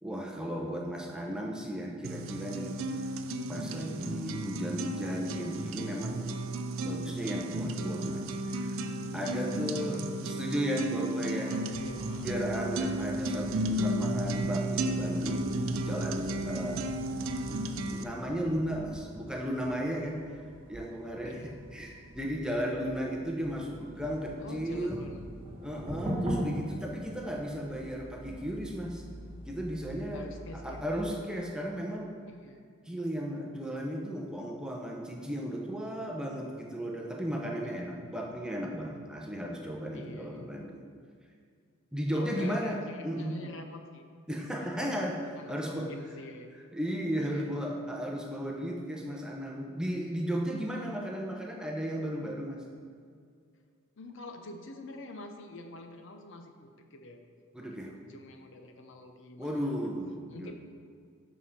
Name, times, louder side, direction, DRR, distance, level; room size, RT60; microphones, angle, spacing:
voice 1, 0.0-2.8 3.5-6.3 6.8-8.8 9.1-11.7 12.2-16.9 17.5-20.2 20.7-21.4 21.7-25.1 25.6-29.1 29.5-30.3 30.5-32.2 32.9-40.8 41.9-42.8 43.0-43.4 44.3-45.2 45.5-45.9 46.7-52.6 57.5-57.9 59.4-60.5, equal, 5° right, -1 dB, 0.7 m, -35 dB
sound 1, 2.0-18.0, right 1 dB, 70° right, 0.5 m, -33 dB
voice 2, 9.2-10.3 11.2-12.3 21.2-21.6 24.4-25.3 30.1-30.8 32.3-32.6 37.6-37.9 39.9-40.5 42.1-44.1 44.6-44.9 45.4-46.5 47.3-47.8 54.0-57.2 57.6-59.9 60.3-60.5, left 2 dB, 60° left, 4 dB, 0.7 m, -47 dB
sound 2, 11.7-31.1, equal, 25° right, 2.1 m, -43 dB
7.3 x 5.0 x 5.7 m, 2.2 s
head